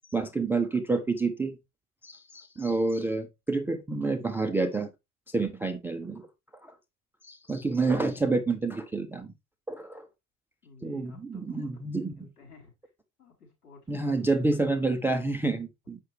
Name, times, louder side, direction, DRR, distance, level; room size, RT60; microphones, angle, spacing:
voice 1, 0.1-1.5 2.0-4.9 5.3-6.3 6.6-6.7 7.2-9.3 9.7-10.1 10.8-12.3 13.9-16.0, right 3 dB, 5° right, 0.3 m, -28 dB
voice 2, 10.6-11.8 12.2-12.7 13.2-14.4, left 4 dB, 80° left, 4.4 m, -54 dB
7.5 x 5.8 x 3.1 m
hypercardioid pair, 90°, 45 cm